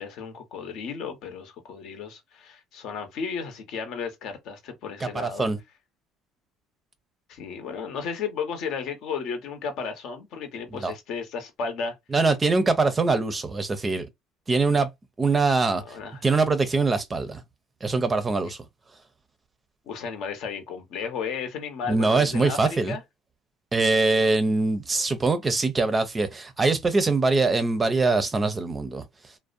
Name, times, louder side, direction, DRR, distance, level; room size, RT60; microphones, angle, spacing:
voice 1, 0.0-5.5 7.3-12.0 15.8-16.2 19.9-23.0, left 6 dB, 65° left, 0.8 m, -34 dB
voice 2, 5.0-5.6 10.8-10.9 12.1-14.1 14.5-14.9 15.2-17.4 17.8-18.6 21.9-22.9 23.7-29.1, right 3 dB, 20° right, 0.5 m, -23 dB
2.5 x 2.0 x 2.5 m
cardioid pair, 110°, 0 cm